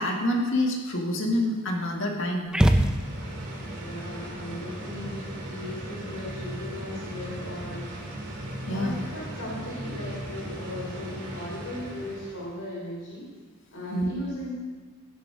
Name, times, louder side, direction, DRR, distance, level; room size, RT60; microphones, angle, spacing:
voice 1, 0.0-2.5 8.7-9.0 13.9-14.1, left 1 dB, 60° left, 1 dB, 1.9 m, -27 dB
sound 1, 2.5-3.6, right 1 dB, 5° right, 0.5 m, -22 dB
sound 2, 2.6-12.6, right 1 dB, 55° right, 3.0 m, -37 dB
voice 2, 3.8-8.0 8.7-13.3 13.7-14.5, left 1 dB, 80° left, -5 dB, 3.5 m, -37 dB
17.0 x 7.5 x 4.9 m, 1.5 s
head